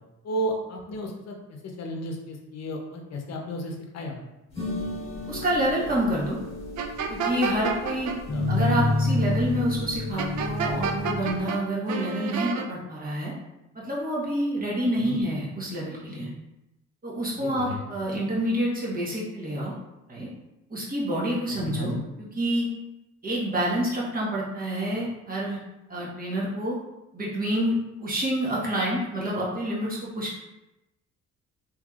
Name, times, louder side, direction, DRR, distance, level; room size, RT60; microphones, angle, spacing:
voice 1, 0.2-4.2 8.3-8.5 14.9-15.2 17.4-17.8 21.5-22.0, equal, 60° left, 2 dB, 0.8 m, -33 dB
sound 1, 4.6-11.5, left 2 dB, 20° left, 1.4 m, -29 dB
voice 2, 5.2-6.4 7.1-8.1 8.5-13.3 13.7-16.3 17.0-19.7 20.1-20.3 20.7-21.9 22.3-22.7 23.2-25.6 25.9-26.8 27.1-30.4, right 1 dB, 30° right, -5 dB, 1.2 m, -28 dB
sound 2, 6.8-8.2 10.2-11.6 11.9-12.7, right 6 dB, 70° right, 0.5 m, -29 dB
3.4 x 2.9 x 2.4 m, 0.95 s
cardioid pair, 90°, 30 cm